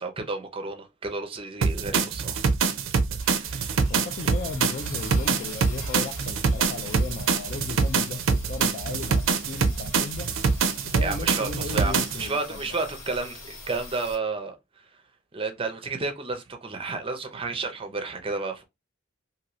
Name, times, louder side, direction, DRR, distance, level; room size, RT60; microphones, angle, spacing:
voice 1, 0.0-2.4 3.2-3.8 11.0-14.6 15.3-18.7, right 3 dB, 25° right, 0.5 m, -31 dB
sound 1, 1.6-12.3, right 5 dB, 80° right, 0.4 m, -25 dB
sound 2, 3.2-14.2, left 2 dB, 75° left, 1.8 m, -44 dB
voice 2, 3.9-10.3 10.8-12.6, left 4 dB, 45° left, 0.3 m, -36 dB
2.7 x 2.6 x 3.0 m
head